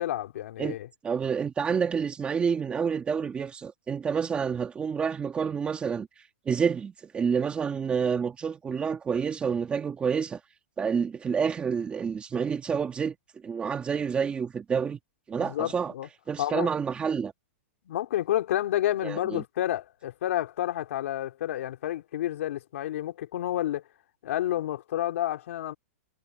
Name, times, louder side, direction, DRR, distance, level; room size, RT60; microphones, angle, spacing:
voice 1, 0.0-0.9 15.4-16.1 16.4-16.7 17.9-23.8 24.2-25.7, left 13 dB, 70° left, 3.9 m, -30 dB
voice 2, 1.0-10.4 10.8-13.2 13.4-15.0 15.3-15.9 16.3-17.3 19.0-19.4, right 6 dB, 15° right, 1.8 m, -28 dB
hypercardioid pair, 150°, 8 cm